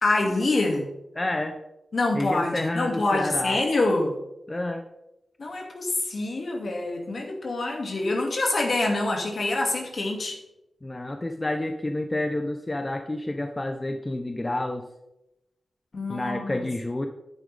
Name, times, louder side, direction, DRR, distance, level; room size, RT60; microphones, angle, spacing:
voice 1, 0.0-0.9 1.9-4.1 5.4-10.4 15.9-16.7, left 2 dB, 60° left, 1 dB, 2.5 m, -26 dB
voice 2, 1.2-1.6 2.1-3.6 4.5-4.8 10.8-14.9 16.1-17.1, left 1 dB, 25° left, 5 dB, 0.9 m, -29 dB
9.9 x 9.2 x 3.6 m, 0.89 s
cardioid pair, 55°, 0 cm